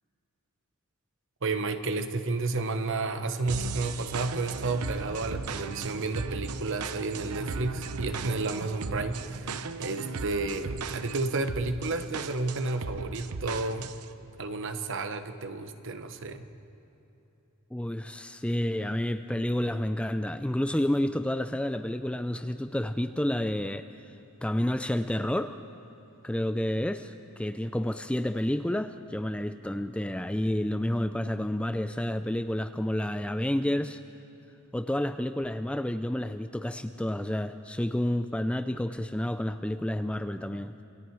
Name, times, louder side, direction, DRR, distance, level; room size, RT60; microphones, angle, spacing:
voice 1, 1.4-13.9 14.4-16.5, right 3 dB, 60° right, 8 dB, 1.1 m, -31 dB
sound 1, 3.5-14.1, right 4 dB, 85° right, 0.7 m, -37 dB
voice 2, 17.7-24.1 24.4-25.5 26.2-34.0 34.7-40.7, left 1 dB, 5° left, 9 dB, 0.4 m, -30 dB
28.0 x 21.5 x 4.7 m, 3.0 s
head